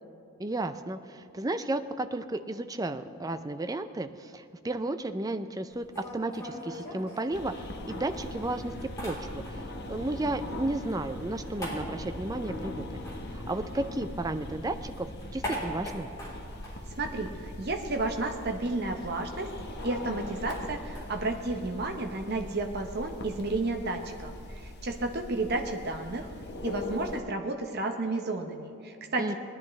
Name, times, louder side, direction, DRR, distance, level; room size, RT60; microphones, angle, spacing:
voice 1, 0.4-5.9 6.1-8.7 9.0-9.6 9.9-13.0 13.3-16.1 29.2-29.3, right 2 dB, 15° right, 10 dB, 0.4 m, -33 dB
sound 1, 5.7-7.9 8.2-9.8 10.1-14.3 14.6-17.9 18.1-18.2 18.5-24.3, equal, 15° left, 3.5 m, -43 dB
sound 2, 7.3-27.2, left 1 dB, 50° left, 1.0 m, -41 dB
voice 2, 17.0-19.5 19.8-26.3 26.6-29.4, right 2 dB, 50° right, 3 dB, 0.9 m, -32 dB
19.5 x 10.5 x 3.2 m, 2.7 s
head